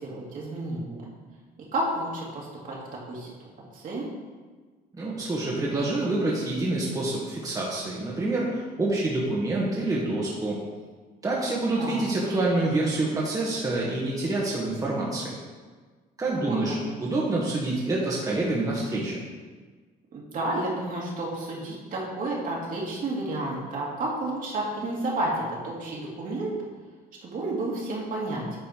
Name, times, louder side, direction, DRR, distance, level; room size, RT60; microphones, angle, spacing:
voice 1, 0.0-1.0 1.7-2.8 3.1-3.3 3.7-4.0 11.8-12.1 16.3-16.9 20.1-26.5 27.2-28.6, right 2 dB, 55° right, -4 dB, 2.3 m, -31 dB
voice 2, 4.9-10.6 11.2-15.3 16.2-16.8 17.0-19.1, right 2 dB, 20° right, -5 dB, 1.4 m, -27 dB
9.0 x 4.2 x 4.4 m, 1.4 s
cardioid pair, 110°, 17 cm